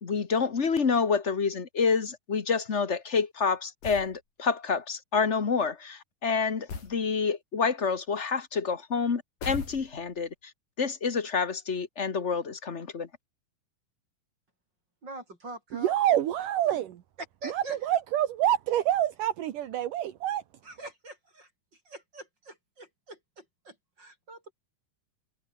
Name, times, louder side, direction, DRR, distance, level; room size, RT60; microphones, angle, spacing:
voice 1, 0.0-10.3 10.8-13.1, left 5 dB, 55° left, 0.7 m, -28 dB
sound 1, 3.8-4.2 6.7-7.0 9.4-10.2, left 5 dB, 75° left, 6.8 m, -38 dB
voice 2, 15.0-15.9 17.4-17.8 20.6-21.5 21.9-24.5, right 2 dB, 30° right, 8.1 m, -44 dB
voice 3, 15.7-17.0 17.4-20.4, right 12 dB, 75° right, 3.0 m, -27 dB
omnidirectional pair, 3.8 m